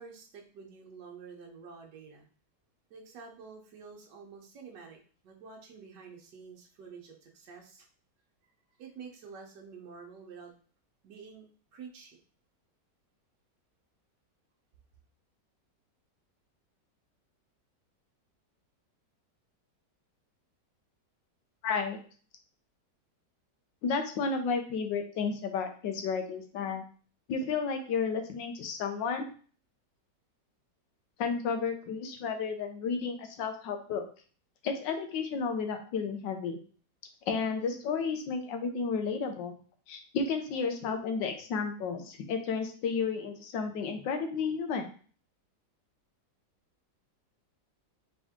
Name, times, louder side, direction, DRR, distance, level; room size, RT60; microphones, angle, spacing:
voice 1, 0.0-2.3 2.9-7.9 8.8-10.5 11.0-12.2, right 5 dB, 75° right, 1 dB, 1.6 m, -49 dB
voice 2, 21.6-22.0 23.8-26.8 27.3-29.3 31.2-34.0 34.6-36.6 37.3-39.5 39.9-44.9, left 5 dB, 90° left, 5 dB, 1.5 m, -32 dB
3.9 x 3.7 x 3.5 m, 0.41 s
omnidirectional pair, 1.9 m